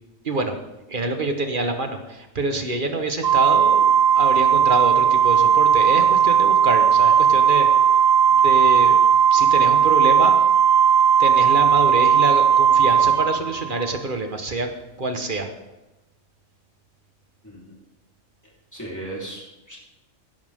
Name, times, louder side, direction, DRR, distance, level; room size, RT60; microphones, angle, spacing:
voice 1, 0.2-0.5 0.9-7.7 8.3-9.0 9.3-10.4 11.2-14.7 15.0-15.5, right 2 dB, 40° right, 5 dB, 1.6 m, -26 dB
Organ, 3.2-14.0, right 8 dB, 85° right, 0.4 m, -16 dB
voice 2, 18.7-19.8, right 2 dB, 10° left, -6 dB, 4.1 m, -36 dB
16.5 x 10.5 x 3.7 m, 1.0 s
omnidirectional pair, 1.4 m